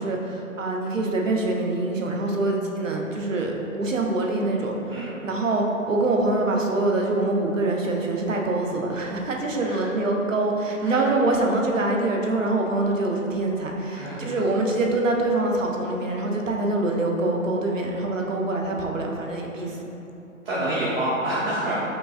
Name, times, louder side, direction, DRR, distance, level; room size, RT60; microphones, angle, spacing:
voice 1, 0.0-19.8, right 2 dB, 65° right, 0 dB, 0.6 m, -25 dB
voice 2, 13.9-14.4 20.4-21.7, right 1 dB, 45° right, -12 dB, 1.0 m, -27 dB
5.1 x 2.3 x 2.4 m, 2.9 s
figure-of-eight pair, 140°, 41 cm